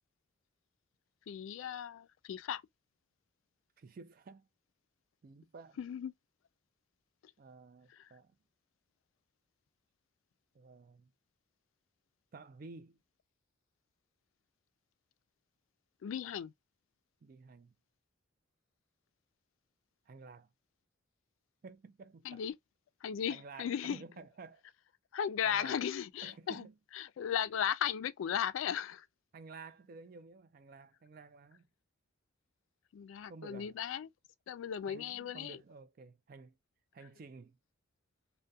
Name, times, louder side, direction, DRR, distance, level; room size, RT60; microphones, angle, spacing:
voice 1, 1.3-2.6 5.8-6.1 8.0-8.1 16.0-16.5 22.2-22.5 23.0-24.0 25.1-26.7 26.9-29.1 32.9-34.1 34.5-35.6, left 8 dB, 80° left, 0.3 m, -36 dB
voice 2, 3.8-4.5 5.2-5.8 7.4-8.4 10.5-11.1 12.3-13.0 17.2-17.7 20.1-20.5 21.6-22.5 23.3-24.6 25.4-25.8 26.2-26.7 29.3-31.6 33.3-33.8 34.9-36.6 36.9-37.6, right 4 dB, 45° right, 0.3 m, -52 dB
2.3 x 2.1 x 2.6 m
head